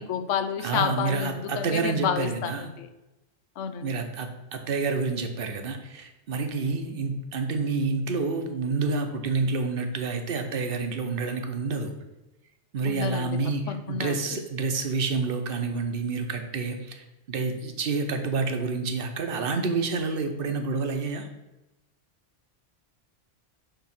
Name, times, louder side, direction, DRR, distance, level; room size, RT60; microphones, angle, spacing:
voice 1, 0.0-2.9 3.6-3.9 12.9-14.4, left 7 dB, 90° left, 8 dB, 1.0 m, -30 dB
voice 2, 0.6-2.7 3.8-11.9 12.7-21.3, right 4 dB, 55° right, 6 dB, 0.9 m, -28 dB
6.8 x 3.1 x 5.8 m, 1.0 s
omnidirectional pair, 1.2 m